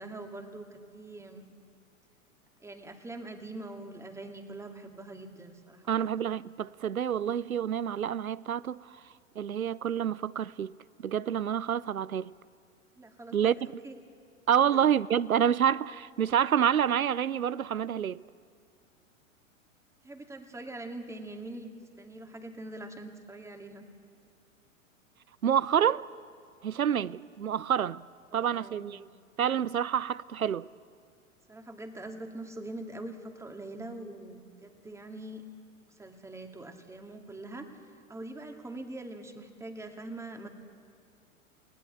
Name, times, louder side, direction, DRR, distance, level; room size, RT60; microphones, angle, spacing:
voice 1, 0.0-1.4 2.6-6.1 13.0-14.0 14.7-14.9 20.0-21.7 22.0-23.9 26.9-27.1 28.3-28.9 31.5-35.4 35.9-37.7 38.1-40.5, right 2 dB, 5° right, 2.3 m, -43 dB
voice 2, 5.9-8.8 9.4-10.7 11.0-12.3 13.3-13.5 14.5-18.2 25.4-26.1 26.6-28.0 28.3-29.1 29.4-30.7, right 9 dB, 85° right, 0.7 m, -28 dB
29.5 x 19.5 x 8.2 m
figure-of-eight pair, 100°, 41 cm